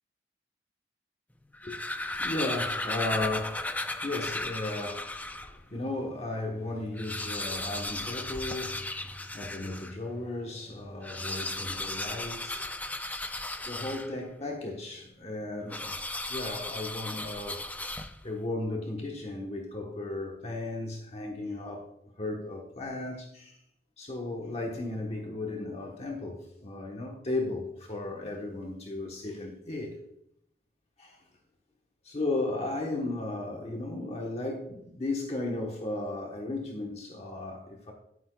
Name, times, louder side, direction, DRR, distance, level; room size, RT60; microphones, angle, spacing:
sound 1, 1.4-5.6 6.1-6.2 6.4-6.5 6.9-10.0 10.9-14.4 15.7-18.4, left 2 dB, 10° left, 0.5 m, -35 dB
voice 1, 1.6-12.8 13.6-17.7 18.2-21.9 22.2-23.6 24.0-30.0 31.0-31.3 32.0-37.9, left 2 dB, 35° left, 1.1 m, -35 dB
12.0 x 9.5 x 2.3 m
head